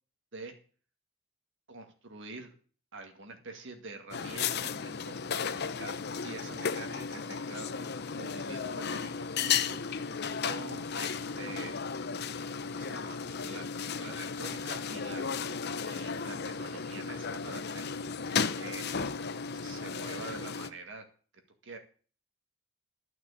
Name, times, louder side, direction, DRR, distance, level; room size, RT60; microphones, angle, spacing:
voice 1, 1.7-2.5 2.9-6.0 6.2-9.8 10.5-11.7 12.7-15.3 15.9-17.9 18.6-19.1 19.5-21.0 21.6-21.8, right 3 dB, 60° right, 5 dB, 2.2 m, -46 dB
sound 1, 4.1-20.7, left 6 dB, 50° left, 0.7 m, -34 dB
12.5 x 6.1 x 8.4 m, 0.42 s
head